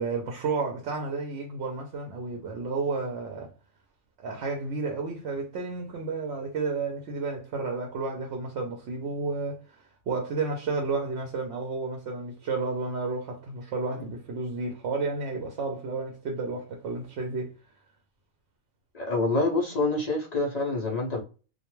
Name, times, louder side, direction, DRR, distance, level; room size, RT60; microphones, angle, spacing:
voice 1, 0.0-3.5 4.2-17.5, right 4 dB, 65° right, 0.8 m, -32 dB
voice 2, 18.9-21.2, left 2 dB, 55° left, 0.4 m, -26 dB
2.3 x 2.1 x 2.9 m
omnidirectional pair, 1.4 m